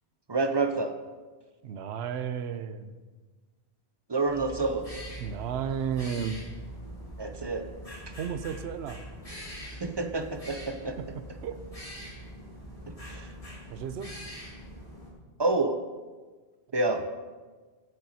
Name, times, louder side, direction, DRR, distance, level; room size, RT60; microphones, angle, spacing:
voice 1, 0.3-0.9 4.1-4.9 7.2-7.6 9.8-11.0 13.1-13.3 15.4-15.8 16.7-17.0, right 3 dB, 35° right, 7 dB, 0.4 m, -28 dB
voice 2, 1.6-2.9 5.2-6.4 8.2-9.0 11.0-11.6 13.7-14.1, right 7 dB, 85° right, 11 dB, 0.9 m, -33 dB
sound 1, 4.3-15.1, equal, 35° left, 2.7 m, -43 dB
15.5 x 8.2 x 2.8 m, 1.4 s
omnidirectional pair, 1.1 m